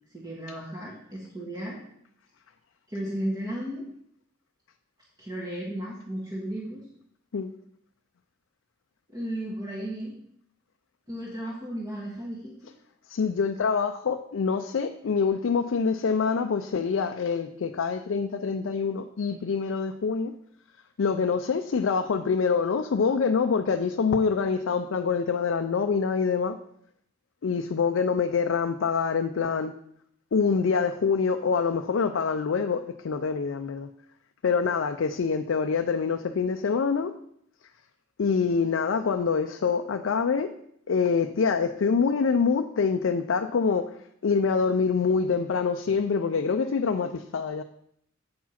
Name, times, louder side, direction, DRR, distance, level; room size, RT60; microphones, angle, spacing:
voice 1, 0.1-1.8 2.9-3.8 5.2-6.8 9.1-10.1 11.1-12.6, right 1 dB, 20° right, -5 dB, 1.5 m, -34 dB
voice 2, 13.1-20.3 21.0-26.6 27.4-29.7 30.3-33.9 34.4-37.1 38.2-40.5 40.9-43.9 44.2-47.6, left 5 dB, 75° left, 6 dB, 0.4 m, -25 dB
8.4 x 4.6 x 5.8 m, 0.71 s
head